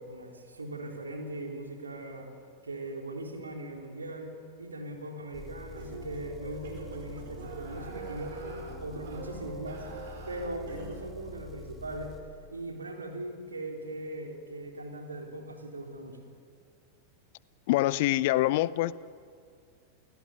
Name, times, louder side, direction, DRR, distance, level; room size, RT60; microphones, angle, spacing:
voice 1, 0.0-2.3 2.6-9.8 10.3-12.2 12.5-16.3, right 1 dB, 75° right, 3 dB, 3.9 m, -40 dB
Engine, 5.3-12.2, left 3 dB, 5° left, 2.9 m, -47 dB
sound 1, 5.7-11.0, right 3 dB, 60° right, 5.1 m, -43 dB
voice 2, 17.7-18.9, left 16 dB, 50° left, 19 dB, 0.7 m, -25 dB
29.5 x 17.5 x 9.5 m, 2.2 s
figure-of-eight pair, 90°, 0 cm